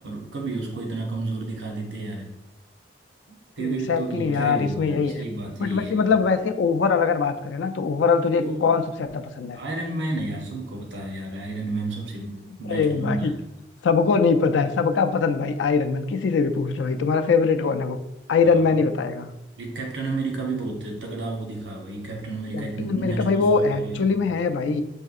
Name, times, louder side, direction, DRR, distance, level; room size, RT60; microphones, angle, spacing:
voice 1, 0.0-2.4 3.3-6.0 8.4-8.7 9.5-13.4 18.4-18.6 19.6-24.1, right 2 dB, 85° right, 1 dB, 0.7 m, -31 dB
voice 2, 3.6-5.2 5.6-9.6 12.7-13.4 13.8-18.0 18.3-19.3 22.5-24.8, left 5 dB, 90° left, 9 dB, 0.4 m, -22 dB
6.4 x 2.6 x 2.4 m, 0.91 s
head